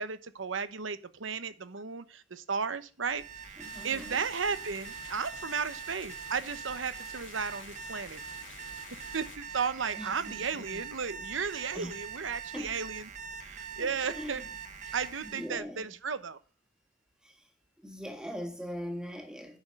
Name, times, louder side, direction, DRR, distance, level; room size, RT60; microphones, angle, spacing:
voice 1, 0.0-8.2 8.9-13.1 13.4-14.4 14.9-16.4, right 5 dB, 90° right, 0.9 m, -34 dB
Alarm, 3.0-15.5, right 6 dB, 40° right, 1.4 m, -44 dB
sound 1, 3.6-9.4, left 9 dB, 75° left, 0.7 m, -51 dB
voice 2, 3.6-4.3 10.0-10.8 11.8-11.9 12.5-12.8 13.8-14.5 14.8-15.0 15.2-15.9 17.2-17.5 17.8-19.6, equal, 5° right, 1.7 m, -41 dB
9.5 x 6.3 x 6.5 m
head